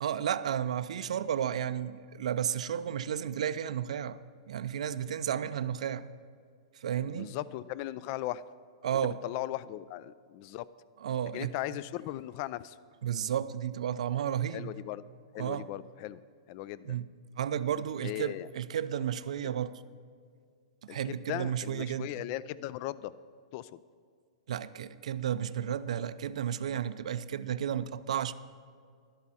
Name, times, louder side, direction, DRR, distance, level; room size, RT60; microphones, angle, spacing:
voice 1, 0.0-4.2 4.5-6.1 6.8-7.3 8.8-9.2 11.0-11.5 13.0-14.7 15.4-15.7 16.8-17.1 17.4-19.8 20.9-22.1 24.5-28.3, right 9 dB, 75° right, 0.5 m, -32 dB
voice 2, 7.0-8.4 9.2-10.6 11.3-12.8 14.5-15.0 15.3-16.2 16.5-17.0 18.0-18.5 19.4-19.5 20.9-23.1 23.5-23.8, left 15 dB, 40° left, 0.4 m, -38 dB
12.0 x 11.5 x 4.2 m
hypercardioid pair, 140°, 4 cm